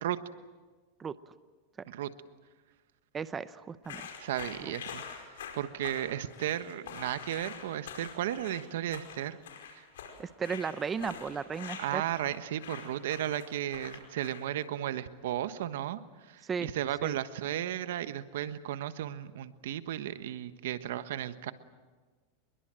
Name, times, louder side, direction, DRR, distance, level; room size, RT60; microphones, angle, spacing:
voice 1, 3.1-4.1 10.2-12.0 16.4-16.7 17.0-17.1, right 6 dB, 20° right, 14 dB, 0.7 m, -35 dB
sound 1, 3.8-14.6, left 7 dB, 90° left, 5.1 m, -45 dB
voice 2, 4.2-9.4 9.7-9.8 11.8-21.5, right 11 dB, 80° right, 12 dB, 1.3 m, -35 dB
26.0 x 22.0 x 7.7 m, 1.4 s
supercardioid pair, 135°, 0 cm